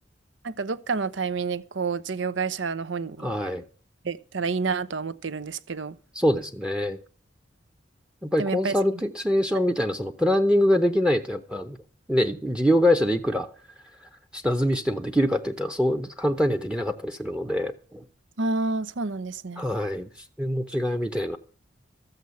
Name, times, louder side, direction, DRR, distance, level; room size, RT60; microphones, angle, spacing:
voice 1, 0.4-3.3 4.0-6.0 8.4-8.7 9.5-9.6 18.4-19.6, right 4 dB, 85° right, 0.8 m, -29 dB
voice 2, 3.2-3.6 6.1-7.0 8.2-11.8 12.1-13.5 14.3-18.0 19.6-21.4, equal, 5° right, 0.8 m, -24 dB
13.5 x 8.0 x 6.9 m
head